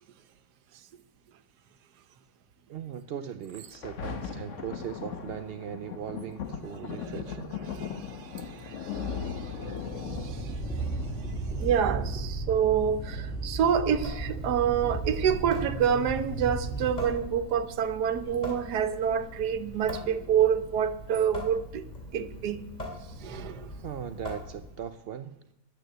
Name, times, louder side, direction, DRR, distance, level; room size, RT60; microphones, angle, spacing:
voice 1, 2.7-7.5 23.8-25.3, right 9 dB, 65° right, 0.6 m, -39 dB
Thunder, 3.5-14.5 15.1-15.2, left 6 dB, 55° left, 1.4 m, -39 dB
voice 2, 7.7-10.9 11.2-21.9 22.1-22.6 23.2-23.7, right 8 dB, 90° right, 1.4 m, -28 dB
sound 1, 10.0-17.2, right 3 dB, ahead, 2.6 m, -34 dB
Water tap faucet / Sink (filling or washing) / Drip, 14.0-24.9, equal, 25° left, 2.9 m, -42 dB
11.5 x 9.3 x 7.8 m
omnidirectional pair, 1.7 m